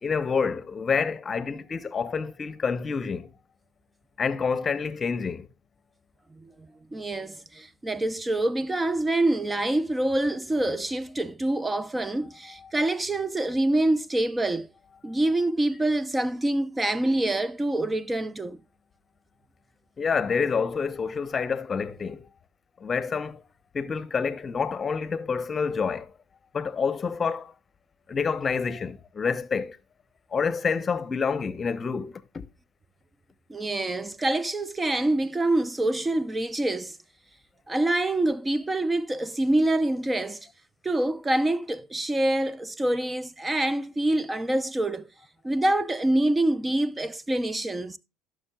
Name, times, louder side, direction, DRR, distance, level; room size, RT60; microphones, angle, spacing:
voice 1, 0.0-3.3 4.2-5.5 12.6-12.7 20.0-22.3 22.8-23.4 23.7-26.1 26.5-27.5 28.1-29.8 30.3-32.4, left 5 dB, 35° left, 0.8 m, -28 dB
voice 2, 6.4-14.7 15.0-18.6 33.5-37.0 37.7-40.5 40.8-45.1 45.4-48.0, right 1 dB, 15° right, 0.6 m, -26 dB
16.5 x 6.3 x 2.3 m
hypercardioid pair, 70°, 0 cm